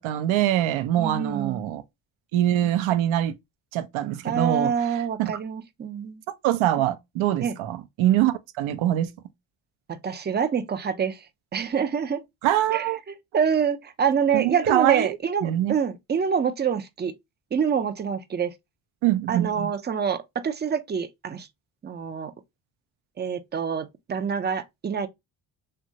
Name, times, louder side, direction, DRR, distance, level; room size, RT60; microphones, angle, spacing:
voice 1, 0.0-1.8 2.3-3.4 3.7-5.4 6.4-9.1 12.4-13.0 14.3-15.1 15.4-15.7 19.0-19.7, right 12 dB, 70° right, 0.6 m, -24 dB
voice 2, 1.0-1.7 4.2-6.2 7.4-7.5 9.9-11.2 11.5-12.2 12.7-17.1 17.5-18.5 19.3-21.5 21.8-22.3 23.2-25.1, right 7 dB, 25° right, 0.4 m, -26 dB
2.9 x 2.3 x 2.6 m
supercardioid pair, 60°, 49 cm